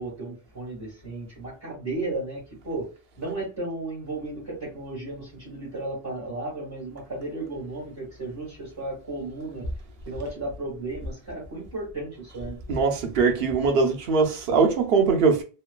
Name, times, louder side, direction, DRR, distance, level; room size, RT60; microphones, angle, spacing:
voice 1, 0.0-2.9 3.2-9.7 10.0-12.6, right 2 dB, 25° right, 1.5 m, -34 dB
voice 2, 12.7-15.4, right 5 dB, 70° right, 0.9 m, -21 dB
3.0 x 2.2 x 2.3 m
omnidirectional pair, 1.1 m